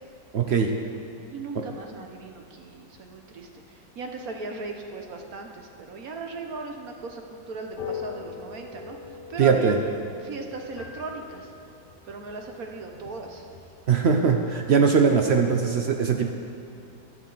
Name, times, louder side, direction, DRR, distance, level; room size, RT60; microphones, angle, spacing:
voice 1, 0.3-0.8 1.5-1.6 9.4-9.8 13.9-16.3, right 6 dB, 85° right, 4 dB, 0.5 m, -21 dB
voice 2, 1.3-9.8 10.2-11.5 12.1-13.5, right 3 dB, 60° right, 3 dB, 1.2 m, -37 dB
sound 1, 7.7-13.7, left 7 dB, 35° left, 0.9 m, -41 dB
16.0 x 10.5 x 4.0 m, 2.5 s
omnidirectional pair, 2.0 m